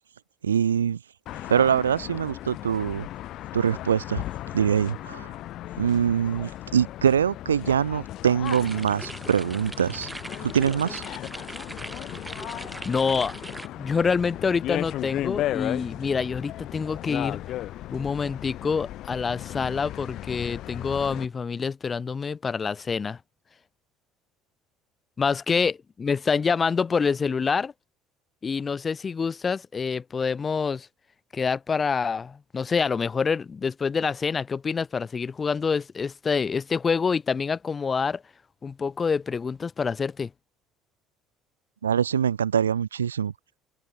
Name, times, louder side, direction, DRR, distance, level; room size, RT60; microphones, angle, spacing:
voice 1, 0.4-1.0 1.5-3.1 3.5-4.2 4.5-5.3 5.8-10.1 10.4-11.0 41.8-43.3, right 8 dB, 80° right, 0.5 m, -24 dB
sound 1, 1.3-21.3, left 14 dB, 55° left, 1.5 m, -36 dB
sound 2, 8.4-13.7, right 2 dB, 10° right, 3.0 m, -40 dB
voice 2, 12.8-13.3 13.8-17.4 17.9-23.2 25.2-27.7 28.4-30.9 31.3-38.2 38.6-40.3, left 5 dB, 30° left, 1.9 m, -26 dB
open air
figure-of-eight pair, 60°, 0 cm